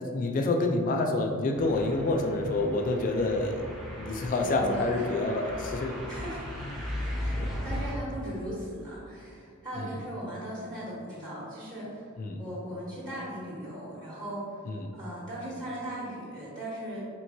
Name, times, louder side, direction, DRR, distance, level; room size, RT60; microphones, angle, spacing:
voice 1, 0.0-3.7 4.0-5.9 6.6-6.7 7.4-7.5 9.8-10.0 12.2-12.4 14.7-14.9, left 2 dB, 40° left, 3 dB, 0.3 m, -28 dB
sound 1, 1.6-8.0, equal, ahead, 0.8 m, -37 dB
voice 2, 4.6-5.1 6.1-6.4 7.6-12.1 12.4-14.6 14.9-17.0, right 1 dB, 20° right, -9 dB, 1.0 m, -38 dB
4.4 x 3.7 x 2.6 m, 2.4 s
head